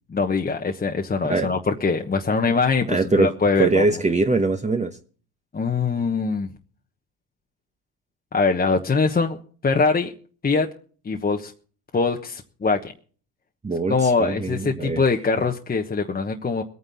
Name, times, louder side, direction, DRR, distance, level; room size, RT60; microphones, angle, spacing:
voice 1, 0.1-3.8 5.5-6.5 8.3-9.4 9.6-10.1 10.4-10.7 11.0-11.5 11.9-12.8 13.9-16.6, left 4 dB, 20° left, 1.2 m, -22 dB
voice 2, 2.9-3.3 3.6-5.0 13.6-15.0, right 3 dB, 15° right, 1.0 m, -22 dB
21.5 x 9.5 x 4.2 m
supercardioid pair, 95°, 46 cm